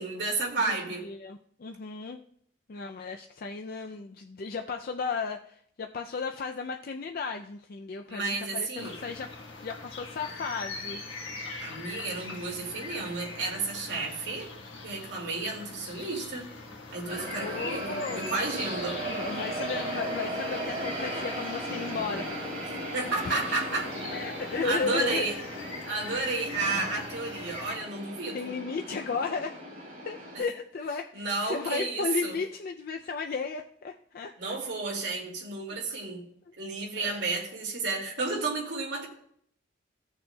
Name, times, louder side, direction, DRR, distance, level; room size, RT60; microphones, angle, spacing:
voice 1, 0.0-1.1 8.1-9.0 11.6-14.5 14.8-16.5 16.9-19.0 22.9-23.9 24.6-25.4 25.8-28.5 30.3-30.5 31.1-32.4 34.4-36.2 36.6-39.1, right 3 dB, 65° right, -2 dB, 2.3 m, -32 dB
voice 2, 1.0-2.2 2.7-9.3 9.6-11.0 17.4-18.4 19.1-22.3 23.2-23.6 24.1-25.3 28.3-29.6 30.1-34.6 35.7-36.0 37.0-37.3, left 4 dB, 50° left, 4 dB, 0.4 m, -34 dB
sound 1, 8.8-27.8, left 3 dB, 80° left, 1.5 m, -42 dB
sound 2, 17.1-30.4, right 1 dB, 35° right, 2.6 m, -37 dB
16.0 x 6.7 x 2.3 m, 0.67 s
head